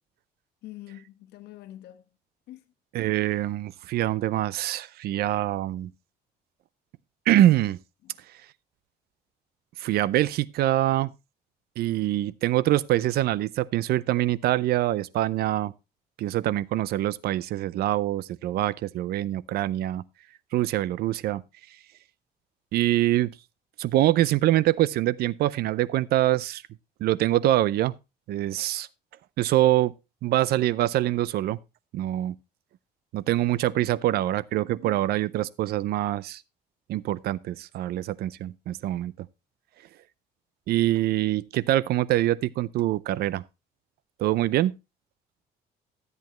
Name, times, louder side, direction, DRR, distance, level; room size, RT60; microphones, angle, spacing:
voice 1, 0.6-2.1 2.5-2.6 8.0-8.2, left 14 dB, 80° left, 1.3 m, -45 dB
voice 2, 2.9-5.9 7.3-7.8 9.8-11.1 11.8-15.7 16.2-20.0 20.5-21.4 22.7-23.3 23.8-26.6 27.0-27.9 28.3-28.9 29.4-29.9 30.2-31.6 31.9-32.3 33.1-36.4 36.9-39.3 40.7-43.4 44.2-44.7, right 14 dB, 70° right, 0.5 m, -24 dB
13.0 x 8.2 x 3.0 m
cardioid pair, 110°, 17 cm